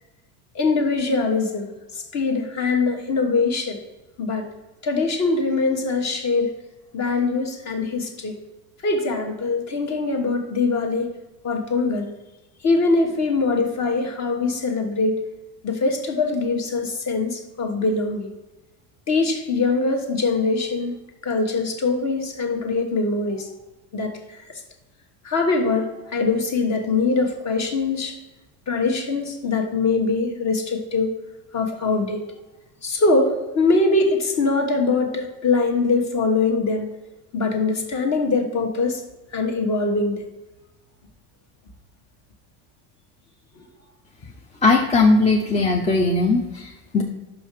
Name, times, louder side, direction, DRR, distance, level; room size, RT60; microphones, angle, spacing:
voice 1, 0.5-1.7 2.1-3.8 4.2-4.5 4.8-6.6 6.9-8.4 8.8-11.1 11.4-12.1 12.6-15.2 15.6-18.3 19.1-20.9 21.2-23.5 23.9-24.4 25.2-28.2 28.7-31.1 31.5-32.3 32.8-36.9 37.3-39.0 39.3-40.2, left 3 dB, 35° left, 4 dB, 1.3 m, -22 dB
voice 2, 44.6-47.0, left 3 dB, 15° left, 1 dB, 0.5 m, -19 dB
5.8 x 5.4 x 4.6 m, 1.1 s
supercardioid pair, 125°, 46 cm